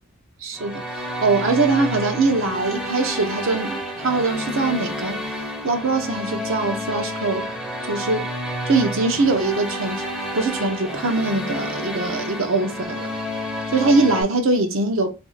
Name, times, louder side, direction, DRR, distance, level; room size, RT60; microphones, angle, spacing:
voice 1, 0.4-5.2 5.6-7.5 7.9-8.3 8.7-10.1 10.3-13.1 13.7-15.1, right 3 dB, 70° right, 0.7 m, -22 dB
sound 1, 0.5-14.2, equal, 5° right, 0.5 m, -30 dB
2.6 x 2.5 x 3.9 m
head